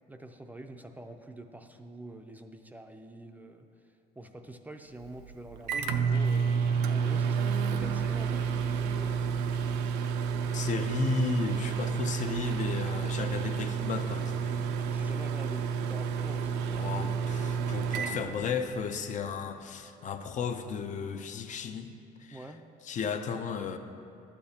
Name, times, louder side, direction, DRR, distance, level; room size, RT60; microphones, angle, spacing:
voice 1, 0.1-6.5 6.9-9.3 14.9-17.1 22.3-22.6, right 1 dB, 10° right, 5 dB, 0.4 m, -46 dB
Microwave oven, 5.0-19.0, right 6 dB, 85° right, 0.5 m, -30 dB
voice 2, 10.5-14.4 16.7-21.9 22.2-22.4 22.9-23.8, left 5 dB, 45° left, 8 dB, 0.6 m, -34 dB
12.0 x 8.4 x 2.9 m, 2.5 s
cardioid pair, 110°, 17 cm